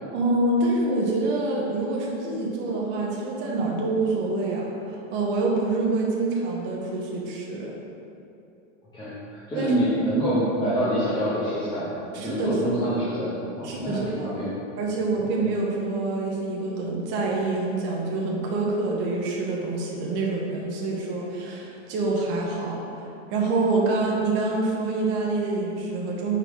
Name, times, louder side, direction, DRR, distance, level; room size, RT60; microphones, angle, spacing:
voice 1, 0.1-7.7 9.5-9.8 12.1-12.6 13.6-14.3 14.8-23.0 23.3-26.4, right 2 dB, 30° right, -3 dB, 0.9 m, -26 dB
voice 2, 8.9-11.9 12.2-13.3 13.6-14.5, equal, 10° left, -13 dB, 1.2 m, -26 dB
5.4 x 4.4 x 4.7 m, 2.7 s
supercardioid pair, 160°, 38 cm